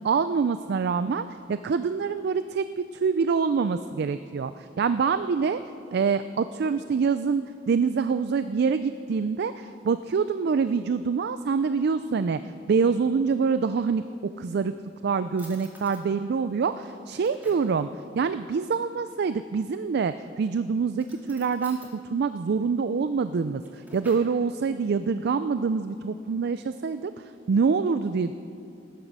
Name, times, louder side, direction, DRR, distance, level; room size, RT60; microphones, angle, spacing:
voice 1, 0.0-5.6 5.9-12.4 12.7-14.7 15.0-17.9 18.1-28.3, right 5 dB, 60° right, 12 dB, 0.4 m, -26 dB
Drawer open or close, 13.6-14.4 15.0-15.1 15.4-16.1 16.7-17.8 19.6-20.2 20.9-21.9 23.3-24.4, right 1 dB, 10° right, 2.3 m, -51 dB
18.5 x 10.5 x 6.1 m, 2.6 s
head